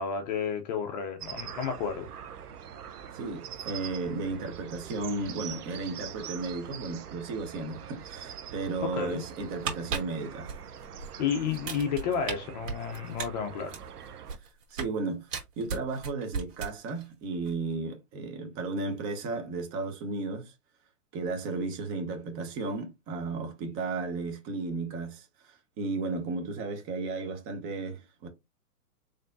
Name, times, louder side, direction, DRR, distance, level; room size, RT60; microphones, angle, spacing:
voice 1, 0.0-2.1 8.8-9.2 11.2-13.8, left 7 dB, 30° left, 0.5 m, -31 dB
sound 1, 1.2-14.4, right 8 dB, 85° right, 0.8 m, -44 dB
voice 2, 3.1-10.5 14.7-15.3 15.6-20.5 21.1-28.3, right 3 dB, 30° right, 1.1 m, -34 dB
sound 2, 9.4-11.1 11.5-12.3 12.7-15.0 15.3-17.1 17.3-17.5, right 5 dB, 55° right, 2.2 m, -36 dB
4.2 x 3.3 x 2.5 m
hypercardioid pair, 130°, 45 cm